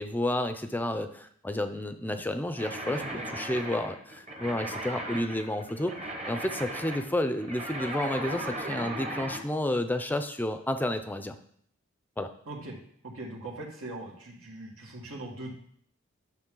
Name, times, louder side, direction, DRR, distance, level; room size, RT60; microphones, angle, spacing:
voice 1, 0.0-5.9 6.3-11.4 12.2-12.3, left 1 dB, 10° left, 9 dB, 0.5 m, -31 dB
sound 1, 2.6-9.4, right 1 dB, 30° right, 1.0 m, -37 dB
voice 2, 12.5-12.8 13.0-15.5, right 2 dB, 85° right, -1 dB, 2.0 m, -41 dB
10.5 x 6.4 x 3.8 m, 0.63 s
head